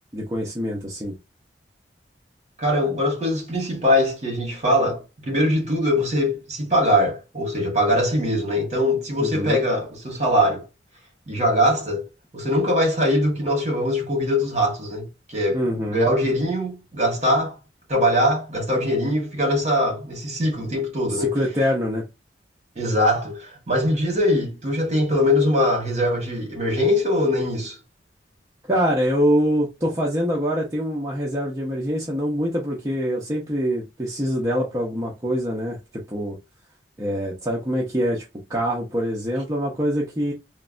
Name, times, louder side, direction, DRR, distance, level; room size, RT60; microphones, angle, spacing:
voice 1, 0.1-1.1 9.2-9.6 15.5-16.1 21.1-22.0 28.7-35.8 36.1-36.4 37.0-38.2 38.5-40.3, equal, 20° right, 0.6 m, -24 dB
voice 2, 2.6-10.6 11.3-12.0 12.3-15.6 15.9-17.5 17.9-21.4 22.7-27.8, left 1 dB, 40° right, 1.3 m, -22 dB
3.1 x 2.1 x 2.4 m
head